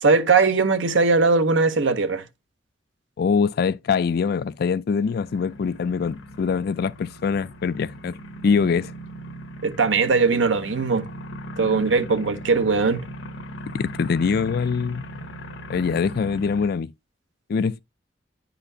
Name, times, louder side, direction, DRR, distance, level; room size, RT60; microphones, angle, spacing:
voice 1, 0.0-2.2 9.6-11.1 11.6-13.0, right 4 dB, 70° right, 0.8 m, -20 dB
voice 2, 3.2-8.2 8.4-8.9 13.7-15.0 15.7-16.9 17.5-17.8, left 5 dB, 55° left, 0.3 m, -23 dB
sound 1, 5.0-16.7, equal, 75° left, 1.0 m, -38 dB
9.8 x 4.2 x 2.6 m
head